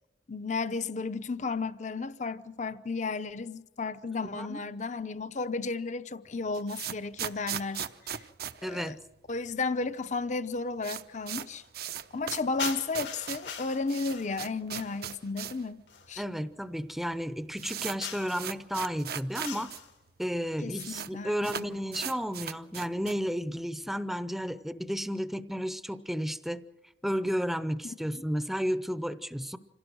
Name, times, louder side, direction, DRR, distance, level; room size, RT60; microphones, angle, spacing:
voice 1, 0.3-8.2 8.7-9.0 9.3-11.6 12.1-15.8 16.1-16.2 20.6-21.6 27.8-28.2, left 3 dB, 40° left, 0.7 m, -33 dB
voice 2, 4.2-4.6 8.6-9.0 16.2-19.7 20.2-26.6 27.0-29.6, equal, ahead, 0.7 m, -32 dB
sound 1, 6.3-9.5 9.8-9.9 10.1-10.2 10.5-15.7 16.0-16.1 16.8-16.9 17.1-19.8 20.1-20.2 20.4-21.1 21.4-23.3, right 9 dB, 60° right, 0.8 m, -38 dB
sound 2, 12.6-15.1 15.9-16.1 18.0-18.5 19.4-20.0, left 7 dB, 90° left, 2.7 m, -41 dB
26.5 x 17.0 x 6.4 m
head